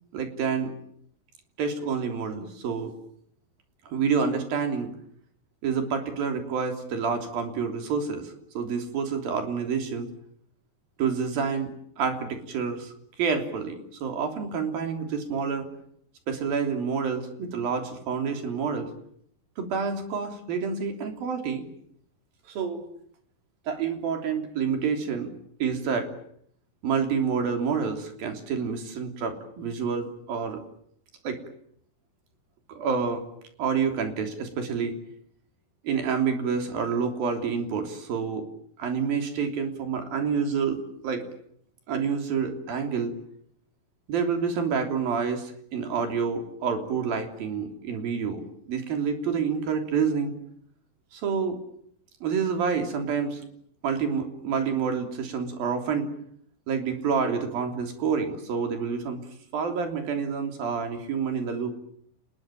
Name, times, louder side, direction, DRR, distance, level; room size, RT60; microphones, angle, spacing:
voice 1, 0.1-0.7 1.6-2.9 3.9-4.9 5.6-10.1 11.0-11.7 12.0-12.9 13.2-15.7 16.3-18.9 19.6-21.6 22.5-22.8 23.7-25.3 25.6-26.1 26.8-30.6 31.2-31.4 32.7-33.2 33.6-35.0 35.8-38.5 38.8-41.2 41.9-43.1 44.1-50.3 51.1-51.6 52.2-53.4 53.8-56.1 56.7-59.2 59.5-61.7, right 6 dB, 80° right, 5 dB, 5.1 m, -28 dB
29.5 x 21.0 x 8.9 m, 0.68 s
omnidirectional pair, 4.2 m